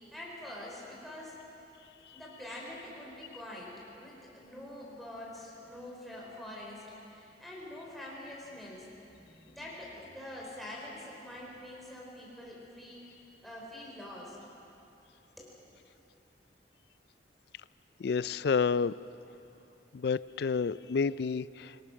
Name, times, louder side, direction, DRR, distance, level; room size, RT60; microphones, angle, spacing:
voice 1, 0.0-1.4 2.1-14.4 15.4-15.6, left 1 dB, ahead, -5 dB, 4.7 m, -45 dB
voice 2, 18.0-18.9 19.9-21.9, left 5 dB, 65° left, 18 dB, 0.4 m, -30 dB
25.5 x 18.0 x 6.4 m, 2.8 s
head